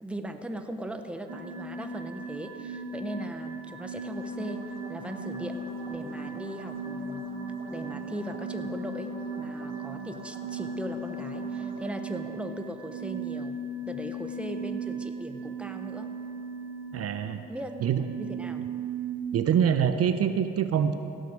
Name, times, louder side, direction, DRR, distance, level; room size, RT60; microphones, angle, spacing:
voice 1, 0.0-5.6 5.9-7.3 7.7-13.6 13.8-16.2 17.5-17.7 18.2-18.6, right 1 dB, 5° right, 6 dB, 0.8 m, -38 dB
sound 1, 1.3-19.2, right 3 dB, 65° right, 1.0 m, -37 dB
sound 2, 4.0-11.9, equal, 20° right, 3.5 m, -44 dB
voice 2, 16.9-17.4 17.8-18.0 19.3-20.9, right 8 dB, 50° right, 9 dB, 0.6 m, -25 dB
16.0 x 6.5 x 6.4 m, 2.7 s
cardioid pair, 90°, 30 cm